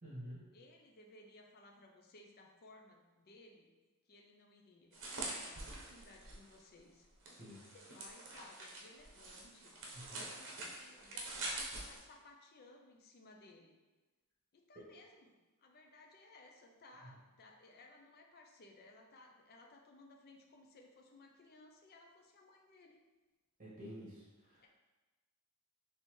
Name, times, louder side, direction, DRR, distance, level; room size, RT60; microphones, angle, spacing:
voice 1, 0.0-0.5 7.3-7.6 9.9-10.3 17.0-17.1 23.6-24.6, equal, 40° right, -8 dB, 1.5 m, -50 dB
voice 2, 0.5-3.7 4.1-9.7 10.2-13.8 14.5-23.0 24.6-24.7, left 2 dB, 45° left, 2 dB, 0.5 m, -60 dB
sound 1, 4.9-6.5 7.3-12.0, right 2 dB, 60° right, 0.9 m, -45 dB
4.2 x 3.4 x 3.1 m, 1.2 s
head